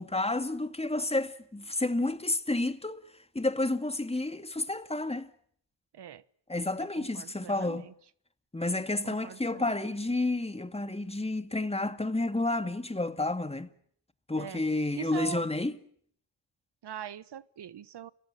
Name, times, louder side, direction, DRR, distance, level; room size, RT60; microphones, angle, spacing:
voice 1, 0.0-3.0 3.3-5.3 6.5-7.9 8.5-13.7 14.3-15.8, left 2 dB, 15° left, 2.2 m, -30 dB
voice 2, 6.8-7.9 9.0-9.9 14.4-14.6 15.0-15.4 16.8-18.1, right 10 dB, 60° right, 1.1 m, -42 dB
30.0 x 17.0 x 9.0 m
supercardioid pair, 55°, 47 cm